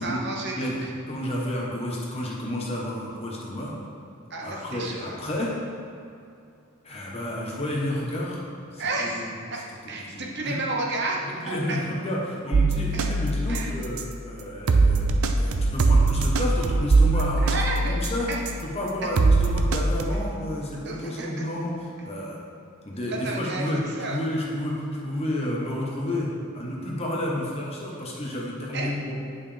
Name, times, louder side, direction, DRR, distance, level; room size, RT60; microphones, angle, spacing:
voice 1, 0.0-0.9 4.3-5.1 8.8-9.6 9.9-11.8 12.9-13.0 13.5-13.7 17.1-18.0 18.3-18.4 19.0-19.1 20.8-21.4 23.0-23.6 24.0-24.2 28.7-28.9, right 2 dB, 50° right, -2 dB, 0.9 m, -31 dB
voice 2, 1.1-3.7 4.4-5.5 6.8-8.4 8.7-9.2 10.1-10.6 11.2-15.1 15.4-17.5 17.9-18.3 18.6-22.4 22.8-23.8 24.1-26.3 26.5-29.2, left 1 dB, 30° left, -3 dB, 1.1 m, -30 dB
sound 1, 12.5-14.2 14.7-18.7 19.2-20.0, right 3 dB, 75° right, 0.5 m, -22 dB
9.3 x 5.5 x 3.4 m, 2.5 s
head